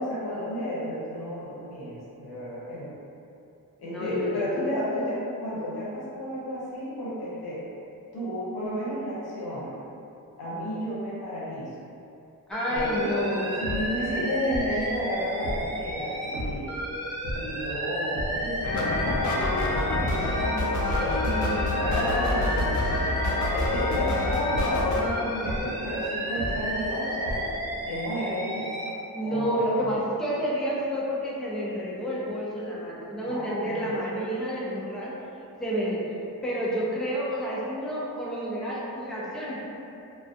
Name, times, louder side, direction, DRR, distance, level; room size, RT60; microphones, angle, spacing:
voice 1, 0.0-2.9 3.8-7.6 8.1-9.7 10.4-11.7 12.7-13.3 13.6-16.7 17.3-22.8 23.5-27.4 27.9-28.9 29.2-29.9 33.3-33.9, equal, 80° left, -8 dB, 0.8 m, -32 dB
voice 2, 3.8-4.4 12.5-13.5 28.3-28.4 29.1-35.1 35.6-36.0 36.4-39.6, equal, ahead, -7 dB, 0.5 m, -29 dB
Alarm, 12.5-16.4 16.7-20.6 20.8-24.7 25.0-28.9, right 1 dB, 45° right, 0.6 m, -33 dB
sound 1, 12.7-16.9 17.2-27.9, equal, 80° right, 0.7 m, -37 dB
sound 2, 18.6-25.1, left 2 dB, 50° left, 0.4 m, -27 dB
2.3 x 2.2 x 2.6 m, 2.7 s
cardioid pair, 55°, 38 cm